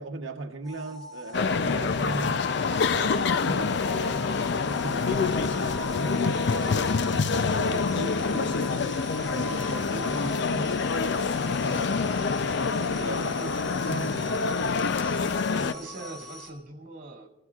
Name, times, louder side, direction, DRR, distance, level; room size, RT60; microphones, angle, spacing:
voice 1, 0.0-10.8 11.4-12.1 12.7-14.8 15.8-16.2, right 2 dB, 85° right, 0.9 m, -39 dB
sound 1, 0.6-16.5, right 1 dB, ahead, 3.5 m, -43 dB
sound 2, 1.3-15.7, left 4 dB, 60° left, 0.5 m, -26 dB
voice 2, 14.8-17.3, right 2 dB, 45° right, 2.3 m, -44 dB
29.0 x 16.0 x 2.4 m
head